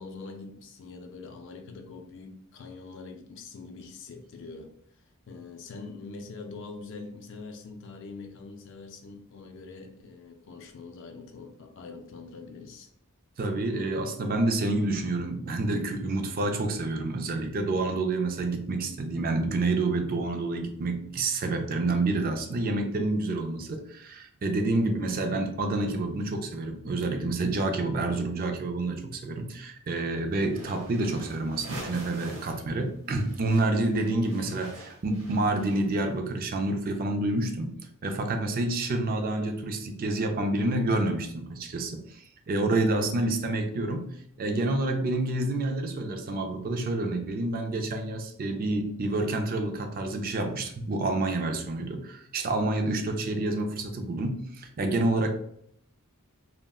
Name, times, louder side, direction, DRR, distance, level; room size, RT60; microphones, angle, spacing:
voice 1, 0.0-4.7 5.3-12.9 34.4-34.7, left 4 dB, 55° left, 4 dB, 0.4 m, -43 dB
voice 2, 13.4-34.7 35.0-37.7 38.0-55.3, right 2 dB, 40° right, 6 dB, 0.4 m, -28 dB
sound 1, 30.5-32.7 32.9-36.1, right 2 dB, 60° right, 0.9 m, -45 dB
2.3 x 2.1 x 3.5 m, 0.69 s
head